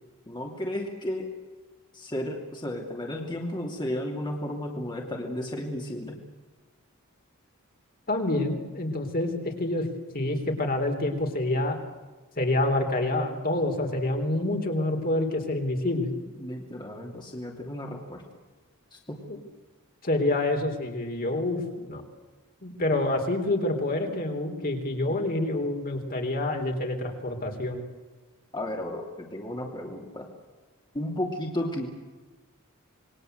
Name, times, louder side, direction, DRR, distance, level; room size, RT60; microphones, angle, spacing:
voice 1, 0.3-1.3 1.9-6.2 16.4-18.2 18.9-19.2 28.5-30.3 30.9-31.9, left 1 dB, 20° left, 0 dB, 2.9 m, -33 dB
voice 2, 8.1-9.9 10.1-11.8 12.4-16.1 19.3-19.4 20.0-22.0 22.6-27.8, left 2 dB, 45° left, 3 dB, 3.8 m, -27 dB
27.0 x 21.5 x 8.1 m, 1.3 s
head